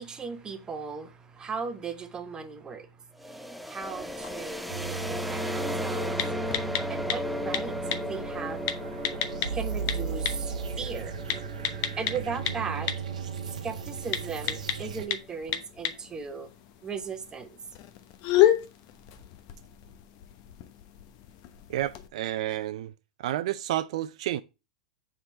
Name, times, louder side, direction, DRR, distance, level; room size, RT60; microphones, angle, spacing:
voice 1, 0.0-6.3 6.9-8.6 9.5-11.2 12.0-12.9 13.6-16.5 16.8-17.6, right 5 dB, 20° right, 1.0 m, -37 dB
sound 1, 3.2-14.9, left 1 dB, ahead, 0.5 m, -36 dB
sound 2, 3.8-22.1, left 12 dB, 50° left, 0.9 m, -33 dB
sound 3, 4.7-15.1, right 6 dB, 80° right, 1.0 m, -36 dB
voice 2, 21.7-22.9 23.2-24.4, right 13 dB, 65° right, 0.4 m, -30 dB
6.5 x 3.8 x 4.3 m
hypercardioid pair, 105°, 4 cm